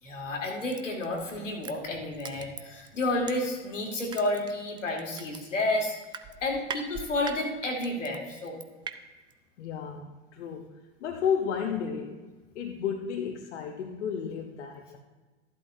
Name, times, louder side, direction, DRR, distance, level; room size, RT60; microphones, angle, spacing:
voice 1, 0.0-6.0 6.4-8.6, left 2 dB, 85° left, 0 dB, 2.1 m, -31 dB
Crushing, 0.7-3.7 4.1-8.9 9.3-9.4, right 8 dB, 15° right, 0.3 m, -41 dB
voice 2, 9.6-12.2 12.5-15.0, left 7 dB, 65° left, 2 dB, 1.0 m, -33 dB
12.5 x 11.5 x 2.7 m, 1.2 s
figure-of-eight pair, 95°, 37 cm